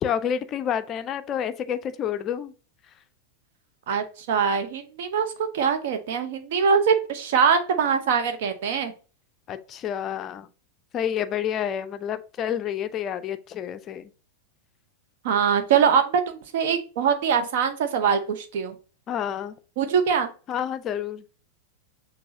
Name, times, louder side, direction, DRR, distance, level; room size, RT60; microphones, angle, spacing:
voice 1, 0.0-2.5 9.5-10.5 10.9-14.1 19.1-19.5 20.5-21.2, left 9 dB, 30° left, 0.4 m, -29 dB
voice 2, 3.9-8.9 15.2-18.7 19.8-20.3, right 6 dB, 55° right, 0.7 m, -23 dB
6.1 x 2.6 x 2.7 m
figure-of-eight pair, 90°, 0 cm